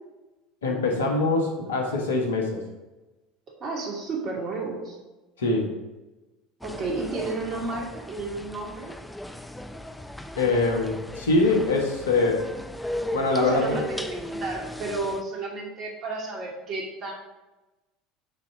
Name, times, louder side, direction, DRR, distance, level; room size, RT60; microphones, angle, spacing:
voice 1, 0.6-2.6 5.4-5.7 10.4-12.5 13.1-13.8, left 3 dB, 80° left, 1 dB, 1.5 m, -23 dB
voice 2, 3.6-5.0 6.6-8.9 13.4-17.1, right 3 dB, 45° right, -1 dB, 2.4 m, -32 dB
sound 1, 6.6-15.2, left 1 dB, 5° left, 0.6 m, -37 dB
7.3 x 4.5 x 6.2 m, 1.1 s
figure-of-eight pair, 70°, 0 cm